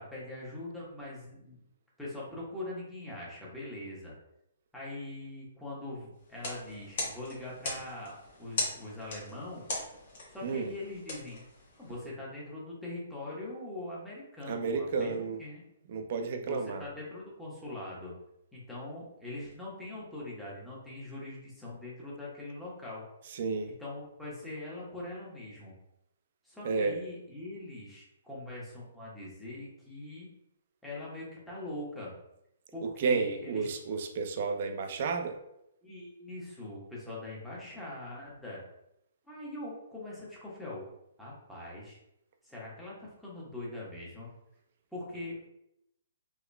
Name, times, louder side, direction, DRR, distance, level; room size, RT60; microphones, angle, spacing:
voice 1, 0.0-1.6 2.0-4.1 4.7-9.6 10.3-11.4 11.8-15.6 16.2-18.1 18.5-23.0 23.7-25.8 26.4-30.3 30.8-32.1 32.7-33.7 35.8-38.6 39.3-40.8 41.2-42.0 42.4-44.3 44.9-45.5, left 2 dB, ahead, -7 dB, 1.2 m, -42 dB
sound 1, 6.3-12.1, left 2 dB, 60° left, 1.2 m, -39 dB
voice 2, 14.5-15.4 15.9-16.9 23.3-23.7 26.6-27.0 33.0-35.4, right 4 dB, 50° right, 5 dB, 0.5 m, -31 dB
3.6 x 3.0 x 2.3 m, 0.82 s
hypercardioid pair, 135°, 0 cm